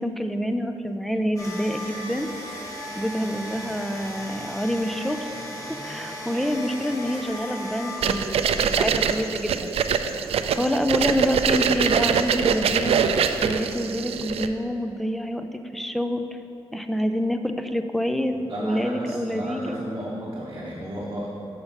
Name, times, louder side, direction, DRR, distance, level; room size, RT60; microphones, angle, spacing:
voice 1, 0.0-2.3 3.0-5.3 5.8-9.7 10.5-13.0 13.4-15.5 15.7-16.2 16.7-18.4 18.6-19.8, equal, ahead, 7 dB, 0.4 m, -27 dB
sound 1, 1.4-8.0, equal, 35° left, 1.8 m, -36 dB
sound 2, 8.0-14.5, right 7 dB, 75° right, 0.4 m, -23 dB
voice 2, 18.3-21.3, equal, 35° right, -5 dB, 1.1 m, -33 dB
6.7 x 5.8 x 5.7 m, 2.8 s
wide cardioid pair, 120°, 10 cm